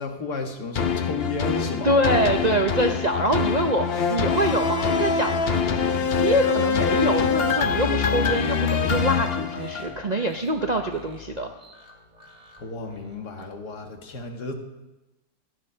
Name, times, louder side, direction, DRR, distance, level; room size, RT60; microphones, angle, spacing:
voice 1, 0.0-1.9 12.6-14.5, left 3 dB, 70° left, 3 dB, 2.1 m, -32 dB
sound 1, 0.7-10.1 10.6-10.7, left 6 dB, 50° left, 0.8 m, -24 dB
voice 2, 1.8-5.8 6.2-11.5 13.4-13.5, right 1 dB, 40° right, 3 dB, 0.6 m, -25 dB
sound 2, 2.4-13.2, right 1 dB, 25° right, 2.5 m, -47 dB
15.0 x 11.0 x 5.7 m, 1.0 s
omnidirectional pair, 1.8 m